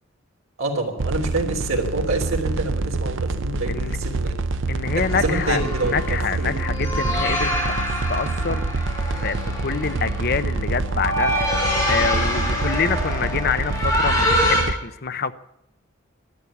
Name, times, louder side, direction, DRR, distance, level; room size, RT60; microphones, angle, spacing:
voice 1, 0.6-4.3 4.9-6.5, right 2 dB, 80° right, 2 dB, 3.4 m, -27 dB
sound 1, 1.0-14.7, right 3 dB, 65° right, 0.7 m, -26 dB
voice 2, 4.7-7.7 8.1-15.3, left 5 dB, 50° left, 12 dB, 0.8 m, -27 dB
sound 2, 4.8-14.6, left 1 dB, 15° left, 6.1 m, -26 dB
13.5 x 11.0 x 9.7 m, 0.83 s
head